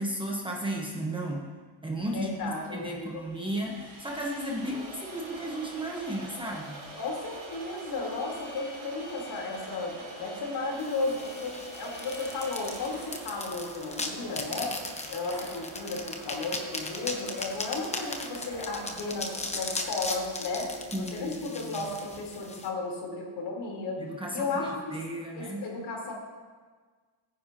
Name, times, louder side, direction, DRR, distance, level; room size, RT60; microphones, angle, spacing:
voice 1, 0.0-1.4 1.8-6.8 20.9-21.9 24.0-25.7, right 1 dB, 10° right, -1 dB, 1.1 m, -34 dB
Sawing, 1.9-21.3, right 1 dB, 35° right, 4.6 m, -49 dB
voice 2, 2.1-3.3 6.9-14.7 15.1-24.0 24.3-25.0 25.3-26.1, left 3 dB, 55° left, -2 dB, 3.9 m, -34 dB
Crowd, 4.3-20.6, right 3 dB, 75° right, 4.1 m, -47 dB
sound 1, 10.8-22.7, left 2 dB, 15° left, 1.0 m, -38 dB
22.0 x 10.0 x 3.0 m, 1.5 s
cardioid pair, 155°, 48 cm